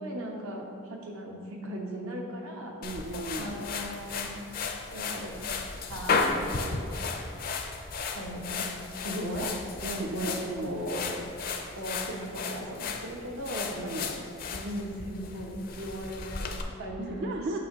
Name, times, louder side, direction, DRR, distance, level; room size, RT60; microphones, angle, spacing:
voice 1, 0.0-2.7 3.4-4.4 4.9-5.5 5.9-6.9 7.3-7.6 8.1-8.8 9.0-9.5 10.0-11.2 11.7-14.2 14.5-17.2, equal, 80° right, 0 dB, 1.0 m, -37 dB
sound 1, 2.8-16.6, left 4 dB, 40° left, 0.4 m, -34 dB
voice 2, 2.8-3.7 9.8-10.8 13.7-14.1 17.0-17.6, right 2 dB, 50° right, 1 dB, 0.3 m, -36 dB
7.3 x 5.9 x 2.8 m, 2.5 s
head